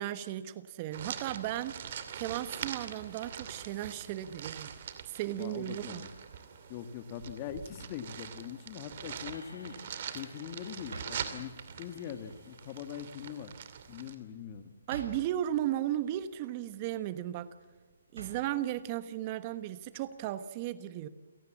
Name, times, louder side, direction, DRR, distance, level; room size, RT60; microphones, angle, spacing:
voice 1, 0.0-1.8 2.1-4.7 5.1-6.1 14.9-17.5 18.1-21.1, right 13 dB, 35° right, 13 dB, 1.2 m, -35 dB
sound 1, 0.9-14.1, right 8 dB, 50° right, 2.6 m, -43 dB
sound 2, 2.4-5.6 6.0-14.4 15.4-16.9, left 2 dB, 90° left, 5.3 m, -63 dB
voice 2, 5.4-6.1 6.7-9.8 10.1-13.5 13.9-14.6, left 9 dB, 35° left, 10 dB, 1.9 m, -42 dB
sound 3, 9.0-20.1, right 3 dB, 75° right, 6.1 m, -53 dB
29.5 x 17.5 x 7.3 m, 1.4 s
hypercardioid pair, 140°, 0 cm